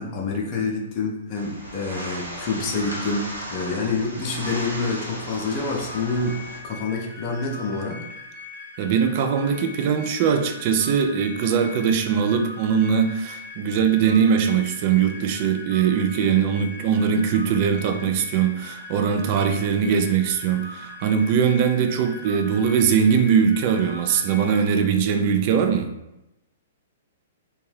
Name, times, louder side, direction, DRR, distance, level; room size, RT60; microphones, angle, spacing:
voice 1, 0.0-8.0, left 3 dB, 35° left, -1 dB, 0.5 m, -27 dB
sound 1, 1.4-6.6, equal, 85° right, 0.7 m, -35 dB
sound 2, 5.9-24.7, left 3 dB, 20° right, 1.2 m, -40 dB
voice 2, 8.8-25.9, right 7 dB, 40° right, 6 dB, 0.3 m, -21 dB
2.6 x 2.2 x 3.2 m, 0.90 s
figure-of-eight pair, 110°, 0 cm